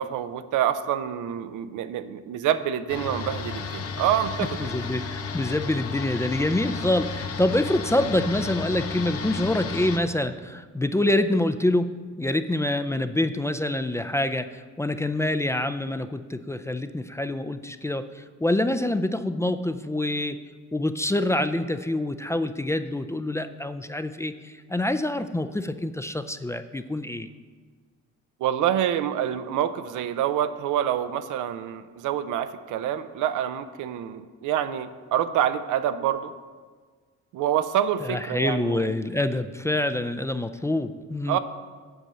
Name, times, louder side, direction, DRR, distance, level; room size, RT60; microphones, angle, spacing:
voice 1, 0.0-4.7 28.4-36.3 37.3-38.9 41.3-41.4, right 10 dB, 85° right, 11 dB, 0.6 m, -27 dB
sound 1, 2.9-10.0, left 5 dB, 50° left, 1.0 m, -33 dB
voice 2, 4.6-20.4 20.7-27.3 38.0-41.4, left 1 dB, 10° left, 10 dB, 0.4 m, -26 dB
8.0 x 5.4 x 7.6 m, 1.5 s
cardioid pair, 90°, 30 cm